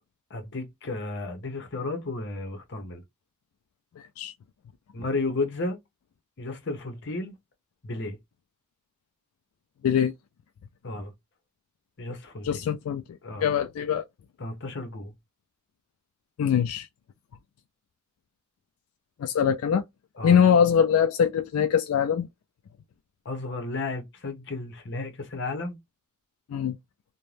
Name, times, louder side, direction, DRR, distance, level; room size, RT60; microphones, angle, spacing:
voice 1, 0.3-3.0 4.9-5.8 6.4-7.4 7.8-8.2 10.8-11.1 12.0-12.5 13.2-13.5 14.4-15.1 20.2-20.4 23.2-25.8, left 3 dB, 55° left, 0.8 m, -33 dB
voice 2, 4.0-4.3 9.8-10.1 12.4-14.0 16.4-16.9 19.2-19.8 20.2-22.3 26.5-26.8, left 8 dB, 85° left, 0.3 m, -23 dB
2.6 x 2.1 x 3.1 m
head